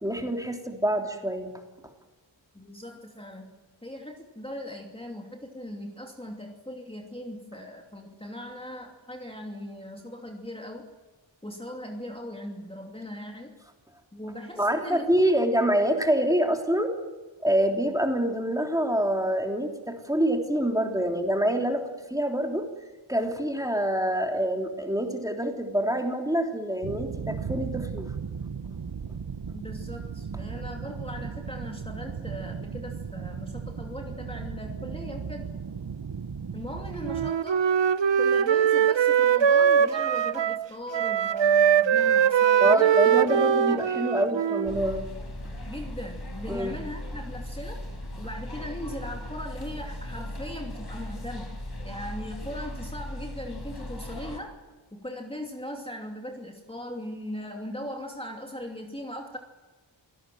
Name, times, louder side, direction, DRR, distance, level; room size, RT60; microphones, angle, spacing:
voice 1, 0.0-1.5 14.6-16.9 17.4-22.7 23.1-28.1 42.6-45.1 46.5-46.8, right 1 dB, 5° right, 3 dB, 3.3 m, -26 dB
voice 2, 2.5-3.5 3.8-10.9 11.4-13.6 14.1-15.4 29.5-35.5 36.5-37.7 38.2-44.2 45.6-47.8 48.2-51.6 51.8-54.6 54.9-59.4, left 1 dB, 10° left, 1 dB, 2.7 m, -39 dB
sound 1, 26.8-37.3, right 6 dB, 55° right, 1.0 m, -36 dB
Wind instrument woodwind instrument, 37.0-40.7 40.9-44.9, right 8 dB, 70° right, 0.7 m, -22 dB
sound 2, 44.7-54.4, left 1 dB, 55° left, 4.4 m, -37 dB
27.5 x 18.0 x 7.8 m, 1.2 s
wide cardioid pair, 75°, 46 cm